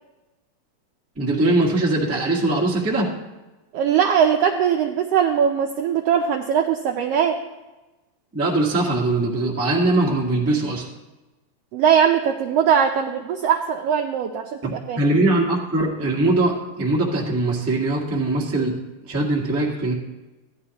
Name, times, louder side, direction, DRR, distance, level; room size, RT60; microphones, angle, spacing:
voice 1, 1.2-3.1 8.3-10.9 14.6-18.8 19.0-19.9, right 2 dB, 10° right, -3 dB, 0.6 m, -21 dB
voice 2, 3.7-7.4 11.7-15.0, right 8 dB, 80° right, 3 dB, 1.4 m, -20 dB
15.5 x 11.0 x 2.9 m, 1.1 s
omnidirectional pair, 3.4 m